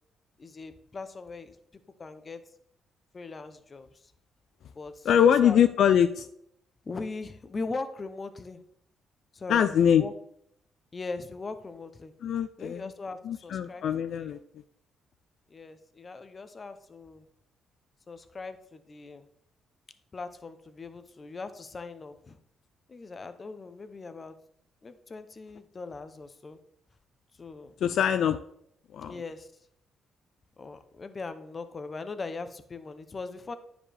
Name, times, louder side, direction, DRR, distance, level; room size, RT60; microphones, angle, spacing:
voice 1, 0.4-1.6 2.0-2.4 3.1-4.0 4.8-5.6 6.8-8.6 9.3-10.1 10.9-12.1 12.6-13.8 14.2-14.4 15.5-17.3 18.1-19.3 20.1-22.4 22.9-24.3 24.8-26.6 27.4-27.8 29.1-29.5 30.6-33.6, left 3 dB, 35° left, 10 dB, 0.7 m, -40 dB
voice 2, 5.1-6.3 9.5-10.0 12.2-12.8 13.2-14.4 27.8-28.4 28.9-29.2, left 9 dB, 70° left, 10 dB, 0.3 m, -23 dB
9.7 x 5.0 x 3.4 m, 0.72 s
cardioid pair, 90°, 0 cm